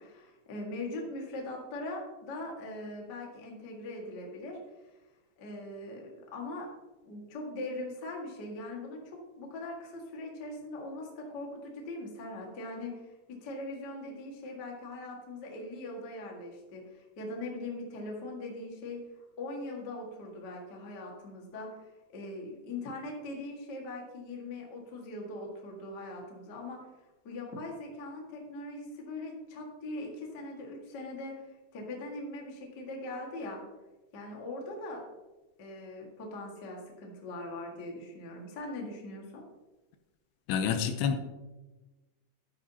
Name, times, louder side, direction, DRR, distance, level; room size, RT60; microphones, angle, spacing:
voice 1, 0.0-4.6 5.4-6.7 7.0-13.1 13.4-19.0 19.4-21.7 22.1-26.8 27.2-31.3 31.7-33.6 34.1-35.0 35.6-39.4, left 2 dB, 55° left, 0 dB, 1.1 m, -41 dB
voice 2, 40.5-41.2, left 7 dB, 80° left, 7 dB, 2.7 m, -28 dB
11.5 x 9.6 x 2.8 m, 1.1 s
omnidirectional pair, 5.0 m